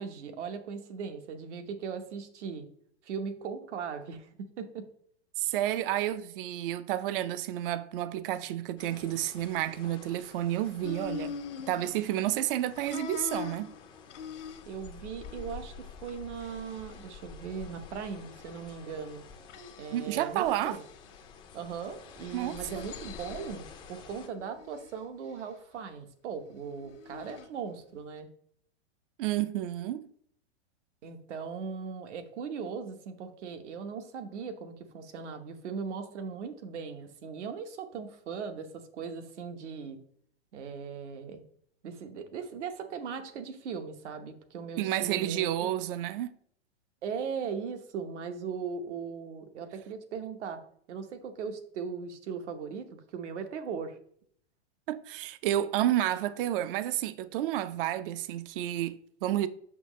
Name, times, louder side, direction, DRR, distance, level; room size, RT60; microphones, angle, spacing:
voice 1, 0.0-2.7 3.0-4.9 14.7-19.2 19.8-20.8 21.5-28.3 31.0-40.0 40.5-41.4 41.8-45.7 47.0-50.6 50.9-54.0, right 6 dB, 75° right, 1.0 m, -39 dB
voice 2, 5.4-11.3 11.7-13.7 19.9-20.8 22.3-22.8 29.2-30.1 44.8-46.3 54.9-59.5, right 13 dB, 50° right, 0.4 m, -30 dB
sound 1, 8.8-24.3, left 5 dB, 15° left, 0.3 m, -49 dB
sound 2, 10.8-12.5 12.8-14.9 15.2-15.6 16.0-17.0 17.7-18.6 19.5-20.1 20.4-21.2 22.0-23.7 24.2-25.0 26.8-27.5, left 6 dB, 85° left, 1.1 m, -44 dB
6.0 x 5.5 x 3.1 m
hypercardioid pair, 145°, 35 cm